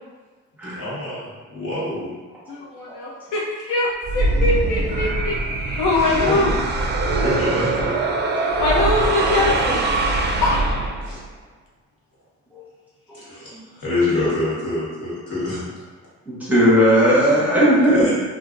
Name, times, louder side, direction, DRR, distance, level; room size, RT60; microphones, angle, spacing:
voice 1, 0.7-1.2 1.5-2.1 6.0-6.4 7.0-7.9 11.0-11.2 13.1-15.6 17.9-18.1, left 2 dB, 55° left, -9 dB, 1.5 m, -26 dB
voice 2, 2.5-5.4 5.8-6.6 8.6-9.8 10.4-10.6 17.3-17.7, left 2 dB, 85° left, -3 dB, 0.5 m, -22 dB
sound 1, 4.0-11.3, right 2 dB, 35° right, 0.4 m, -22 dB
voice 3, 16.3-18.1, equal, 5° right, -8 dB, 0.9 m, -17 dB
2.8 x 2.5 x 2.5 m, 1.3 s
cardioid pair, 90°, 30 cm